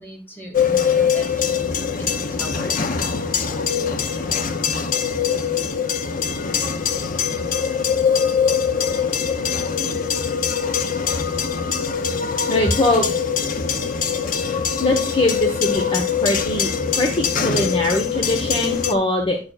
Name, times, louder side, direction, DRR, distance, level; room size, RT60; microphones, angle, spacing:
voice 1, 0.0-2.8, equal, 10° left, 0 dB, 2.1 m, -37 dB
sound 1, 0.5-18.9, left 6 dB, 45° left, 0.7 m, -22 dB
voice 2, 12.5-13.0 14.4-19.4, left 2 dB, 30° left, 2 dB, 1.1 m, -22 dB
9.6 x 6.6 x 2.4 m, 0.33 s
head